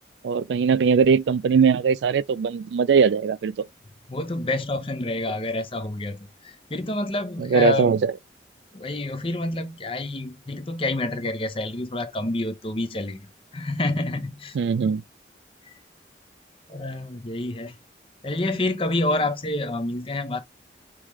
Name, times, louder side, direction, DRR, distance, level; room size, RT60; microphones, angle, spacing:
voice 1, 0.2-3.5 7.4-8.1 14.5-15.0, right 6 dB, 85° right, 0.3 m, -20 dB
voice 2, 4.1-8.0 8.7-13.2 13.5-14.6 16.7-17.8 18.2-20.4, left 2 dB, 30° left, 0.7 m, -28 dB
4.8 x 3.1 x 3.5 m
head